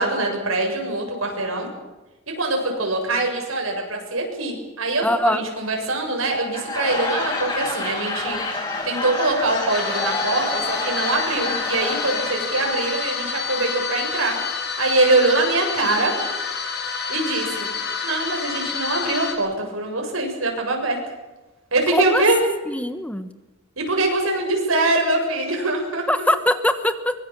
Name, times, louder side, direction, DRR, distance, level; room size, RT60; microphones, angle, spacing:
voice 1, 0.0-1.7 2.4-8.4 8.8-14.3 14.8-16.1 17.1-17.7 18.0-21.0 21.7-22.4 23.8-26.0, right 2 dB, 85° right, 2 dB, 7.3 m, -23 dB
voice 2, 5.0-5.4 21.9-22.2 22.7-23.3 26.1-27.1, left 1 dB, 5° left, 10 dB, 1.2 m, -21 dB
Laughter / Crowd, 6.4-12.6, left 2 dB, 20° left, 7.0 m, -28 dB
sound 1, 9.7-19.3, left 6 dB, 55° left, 4.8 m, -28 dB
23.5 x 23.0 x 7.5 m, 1.1 s
head